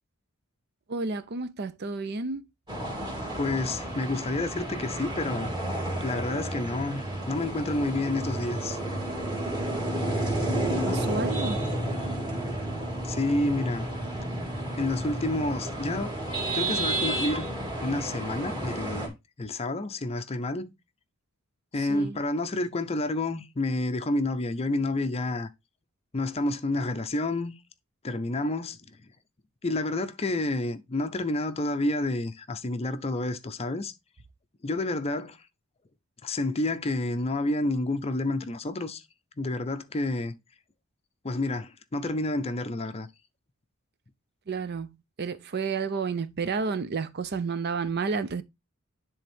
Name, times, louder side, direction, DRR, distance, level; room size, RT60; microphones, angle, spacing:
voice 1, 0.9-2.5 10.9-11.6 21.8-22.2 44.5-48.4, right 4 dB, 50° right, 0.5 m, -31 dB
sound 1, 2.7-19.1, right 1 dB, 20° right, 2.1 m, -31 dB
voice 2, 3.4-5.5 6.0-8.8 13.0-13.9 14.8-16.1 16.5-17.5 17.8-20.7 21.7-25.5 26.1-27.6 28.0-28.8 29.6-33.9 34.6-35.4 36.2-39.0 39.4-40.4 41.2-43.1, left 2 dB, 30° left, 0.5 m, -29 dB
10.5 x 3.5 x 3.4 m
head